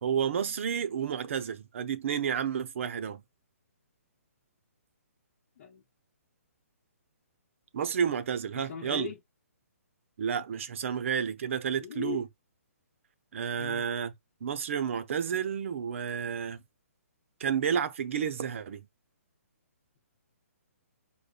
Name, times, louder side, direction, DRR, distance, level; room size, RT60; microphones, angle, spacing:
voice 1, 0.0-3.2 7.7-9.1 10.2-12.3 13.3-14.1 14.4-16.6 17.4-18.8, right 7 dB, 55° right, 0.7 m, -31 dB
voice 2, 8.5-9.2 11.7-12.3 13.6-13.8, left 8 dB, 45° left, 0.8 m, -39 dB
5.1 x 2.2 x 2.4 m
hypercardioid pair, 150°, 8 cm